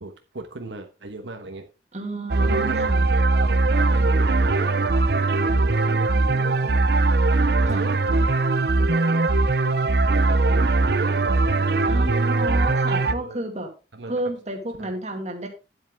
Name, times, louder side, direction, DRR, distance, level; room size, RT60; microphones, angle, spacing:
voice 1, 0.0-1.7 2.4-6.8 7.6-8.4 8.7-9.3 10.1-12.7 13.1-13.4 13.9-14.1 14.8-14.9, right 2 dB, 80° right, 5 dB, 1.2 m, -38 dB
voice 2, 1.9-3.1 7.7-7.8 11.9-13.7 14.1-15.5, right 1 dB, 35° right, 3 dB, 2.1 m, -31 dB
sound 1, 2.3-13.1, right 3 dB, 55° right, 0.6 m, -20 dB
10.0 x 7.8 x 3.6 m, 0.31 s
head